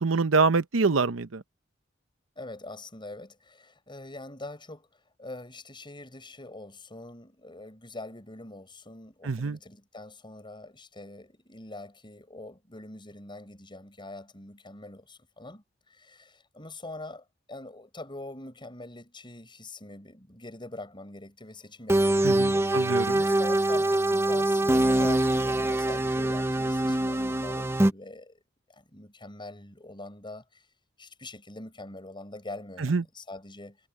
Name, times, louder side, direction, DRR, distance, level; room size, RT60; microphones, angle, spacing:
voice 1, 0.0-1.4 9.2-9.6 22.2-23.2 32.8-33.0, right 4 dB, 80° right, 0.8 m, -25 dB
voice 2, 2.4-4.9 5.2-15.6 15.9-22.7 23.2-28.4 28.7-30.6 31.0-33.8, left 2 dB, 25° left, 7.0 m, -43 dB
sound 1, 21.9-27.9, right 1 dB, 15° right, 0.7 m, -24 dB
head